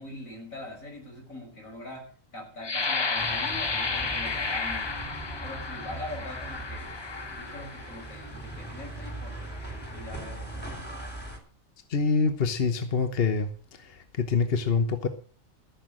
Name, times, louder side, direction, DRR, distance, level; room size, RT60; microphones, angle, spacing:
voice 1, 0.0-5.0 5.4-10.8, left 1 dB, 75° left, 0 dB, 6.4 m, -43 dB
sound 1, 2.6-8.3 8.9-9.1 9.6-10.0, left 4 dB, 25° left, 0.6 m, -32 dB
sound 2, 3.2-11.4, right 1 dB, 5° left, 3.1 m, -39 dB
voice 2, 11.9-13.5 13.8-15.1, left 5 dB, 50° left, 8 dB, 1.2 m, -25 dB
14.5 x 6.8 x 7.6 m, 0.43 s
omnidirectional pair, 1.4 m